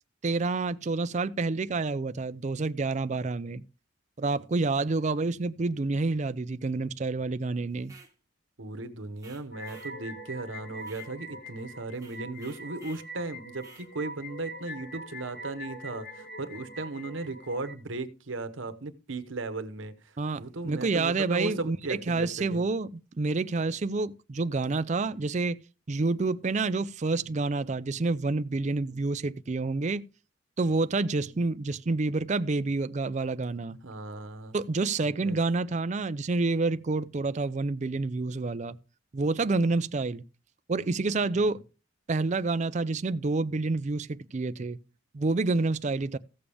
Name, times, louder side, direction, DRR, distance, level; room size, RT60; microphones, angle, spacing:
voice 1, 0.2-3.6 4.2-7.9 20.2-25.6 25.9-30.0 30.6-33.8 34.5-38.8 39.1-40.2 40.7-41.6 42.1-44.8 45.1-46.2, right 3 dB, 35° right, 0.4 m, -28 dB
sound 1, 7.8-8.1 9.2-9.9 10.8-11.1 11.9-13.1 13.6-13.9, right 4 dB, 15° right, 1.3 m, -54 dB
voice 2, 8.6-19.9 20.4-22.6 27.2-27.3 28.8-29.0 31.2-31.3 33.8-34.5 35.0-35.4 41.3-41.4, right 3 dB, 80° right, 1.0 m, -36 dB
sound 2, 9.5-17.7, equal, 55° left, 2.0 m, -43 dB
15.5 x 7.0 x 3.4 m
head